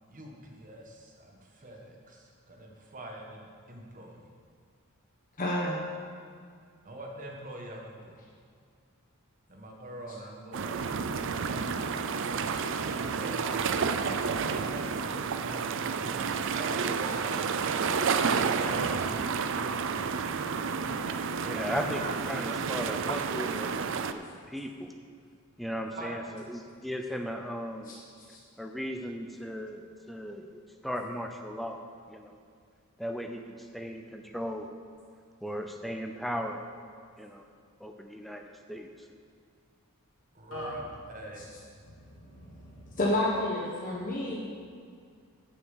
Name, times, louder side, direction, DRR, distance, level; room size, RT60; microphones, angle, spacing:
voice 1, 0.1-4.3 5.8-6.1 6.8-8.2 9.5-10.9 11.4-12.4 12.7-13.7 13.9-19.3 21.6-22.1 26.0-26.2 40.3-41.4, right 1 dB, 35° right, 0 dB, 1.5 m, -44 dB
voice 2, 5.4-5.9 27.9-28.0 28.3-28.4 43.0-44.4, left 1 dB, 40° left, -4 dB, 1.2 m, -29 dB
sound 1, 10.5-24.1, right 5 dB, 55° right, 0.5 m, -30 dB
voice 3, 21.3-22.0 22.3-23.8 24.1-24.9 25.6-27.9 28.6-31.8 32.1-32.4 33.0-34.7 35.4-36.6 37.2-37.4 37.8-39.1, equal, ahead, 4 dB, 0.6 m, -37 dB
voice 4, 40.5-40.9 41.4-41.5 41.8-43.0 43.8-44.2, left 1 dB, 75° left, -6 dB, 2.5 m, -45 dB
9.6 x 7.3 x 7.2 m, 2.2 s
head